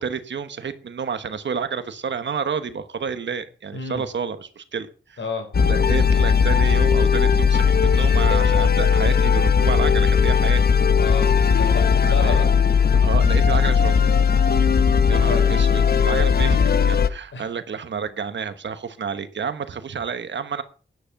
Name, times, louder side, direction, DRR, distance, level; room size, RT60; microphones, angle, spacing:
voice 1, 0.0-5.2 5.6-10.6 12.0-12.5 12.9-14.1 15.1-20.6, right 6 dB, 75° right, 1.2 m, -30 dB
voice 2, 3.7-4.0 5.2-5.5 11.0-12.4 15.3-15.4 17.3-17.5, left 4 dB, 80° left, 5.5 m, -30 dB
sound 1, 5.5-17.1, left 6 dB, 55° left, 0.8 m, -17 dB
12.0 x 9.9 x 5.8 m
wide cardioid pair, 155°, 19 cm